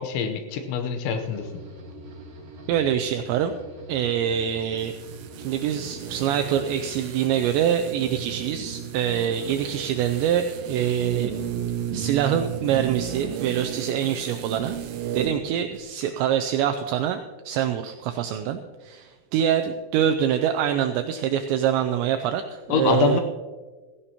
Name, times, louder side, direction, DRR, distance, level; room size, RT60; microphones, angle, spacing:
voice 1, 0.0-1.5 22.7-23.2, left 5 dB, 75° left, 7 dB, 2.9 m, -24 dB
sound 1, 1.2-12.8, right 1 dB, 40° right, 3.2 m, -44 dB
voice 2, 2.7-3.5 3.9-4.9 5.4-11.3 11.9-14.8 15.1-23.2, right 9 dB, 90° right, 6 dB, 2.5 m, -25 dB
sound 2, 4.8-15.4 15.7-15.8, right 9 dB, 75° right, 2.4 m, -34 dB
16.5 x 16.0 x 2.9 m, 1.4 s
omnidirectional pair, 5.8 m